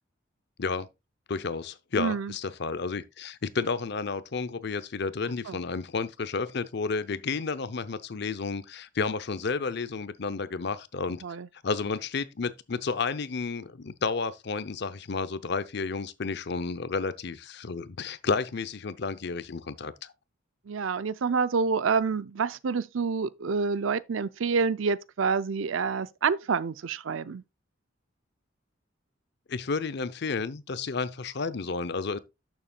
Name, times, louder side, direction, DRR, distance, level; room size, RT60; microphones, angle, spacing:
voice 1, 1.3-11.2 11.6-20.1 29.5-32.2, left 4 dB, 60° left, 0.7 m, -31 dB
voice 2, 2.0-2.3 5.5-5.6 11.2-11.5 20.7-27.4, right 5 dB, 75° right, 0.5 m, -28 dB
11.5 x 7.0 x 2.3 m
head